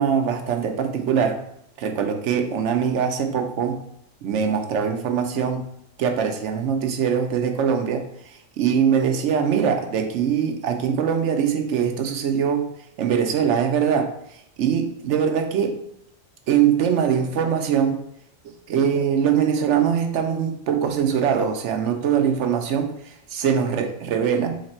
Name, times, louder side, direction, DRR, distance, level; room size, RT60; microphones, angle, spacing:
voice 1, 0.0-1.4 1.8-3.8 4.2-5.6 6.0-8.0 8.3-12.7 13.0-14.1 14.6-15.8 16.5-18.0 18.7-24.5, right 7 dB, 80° right, 5 dB, 1.0 m, -22 dB
3.3 x 3.2 x 4.3 m, 0.76 s
omnidirectional pair, 1.2 m